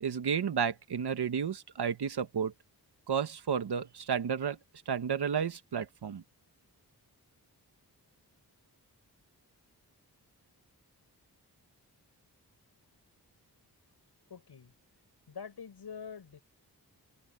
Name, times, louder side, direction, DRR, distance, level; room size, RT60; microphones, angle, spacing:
voice 1, 0.0-2.5 3.1-4.6 4.9-6.2, right 7 dB, 85° right, 1.4 m, -32 dB
voice 2, 14.3-14.7 15.3-16.4, left 6 dB, 85° left, 7.4 m, -45 dB
wide cardioid pair, 80°, 38 cm